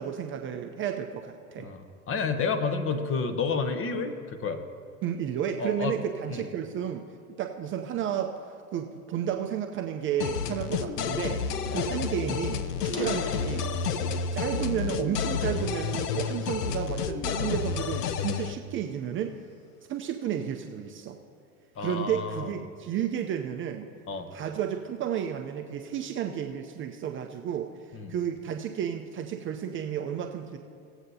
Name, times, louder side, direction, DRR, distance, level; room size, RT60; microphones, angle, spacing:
voice 1, 0.0-1.7 5.0-7.1 7.4-13.7 14.3-19.3 19.9-21.2 21.8-23.9 24.3-30.6, right 9 dB, 25° right, 4 dB, 0.5 m, -32 dB
voice 2, 1.6-4.6 5.6-5.9 6.3-6.5 11.7-11.9 21.8-22.5 24.1-24.3 27.9-28.1, left 5 dB, 30° left, 8 dB, 0.9 m, -30 dB
sound 1, 10.2-18.5, left 6 dB, 80° left, 0.7 m, -30 dB
sound 2, 12.8-14.3 14.8-16.1 16.7-17.0 17.6-19.6, left 2 dB, 55° left, 1.6 m, -40 dB
18.0 x 8.0 x 2.8 m, 2.4 s
hypercardioid pair, 95°, 46 cm